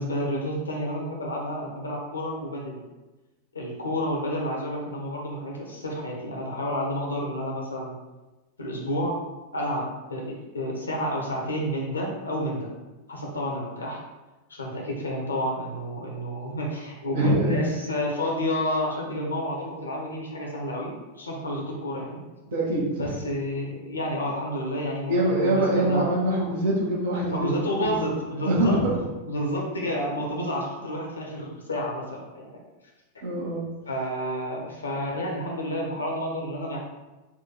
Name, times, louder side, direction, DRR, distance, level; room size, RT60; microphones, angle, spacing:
voice 1, 0.0-2.8 3.5-8.0 8.6-9.2 9.5-12.7 13.1-14.0 14.5-22.2 23.0-26.1 27.3-28.8 29.2-32.6 33.9-36.8, equal, 75° left, -2 dB, 1.1 m, -30 dB
voice 2, 17.1-17.6 21.5-21.6 22.4-23.1 25.1-27.5 27.8-28.1 28.4-28.9 33.2-33.6, right 1 dB, 60° right, -4 dB, 1.5 m, -24 dB
4.3 x 2.7 x 4.3 m, 1.1 s
figure-of-eight pair, 90°, 0 cm